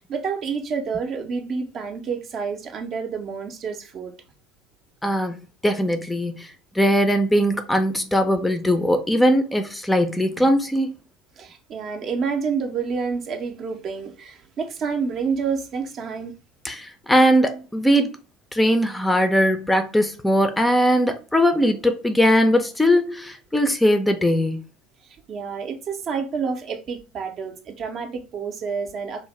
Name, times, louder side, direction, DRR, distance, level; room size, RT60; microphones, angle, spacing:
voice 1, 0.0-4.1 11.4-16.3 25.3-29.3, right 5 dB, 45° right, 0.5 m, -29 dB
voice 2, 5.0-5.4 5.6-6.5 6.8-11.0 16.6-18.1 18.5-24.6, equal, 10° left, 0.4 m, -20 dB
2.5 x 2.0 x 3.0 m
hypercardioid pair, 70°, 0 cm